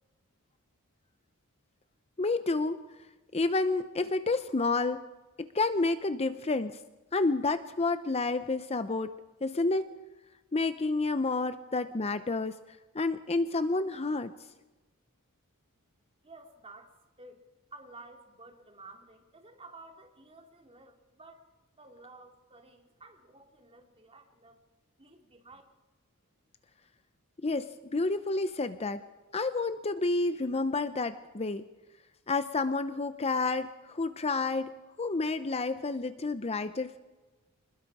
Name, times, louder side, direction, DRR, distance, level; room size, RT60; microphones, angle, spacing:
voice 1, 2.2-2.8 3.3-5.0 5.4-6.8 7.1-9.1 9.4-9.9 10.5-14.3 27.4-29.0 29.3-31.6 32.3-37.0, left 3 dB, 30° left, 11 dB, 0.7 m, -30 dB
voice 2, 16.2-17.4 17.7-21.5 21.8-24.6 25.0-25.6, right 2 dB, 25° right, 3 dB, 2.7 m, -52 dB
26.5 x 21.0 x 4.9 m, 1.1 s
head